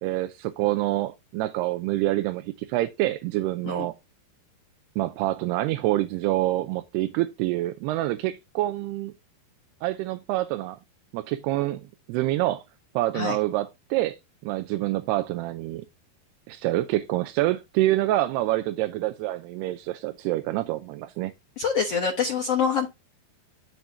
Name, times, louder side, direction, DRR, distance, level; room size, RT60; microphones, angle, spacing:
voice 1, 0.0-3.9 5.0-9.1 9.8-10.8 11.1-12.6 13.0-15.9 16.5-21.3, right 16 dB, 90° right, 2.7 m, -27 dB
voice 2, 21.6-22.9, left 6 dB, 85° left, 1.3 m, -25 dB
12.0 x 4.6 x 2.6 m
omnidirectional pair, 4.6 m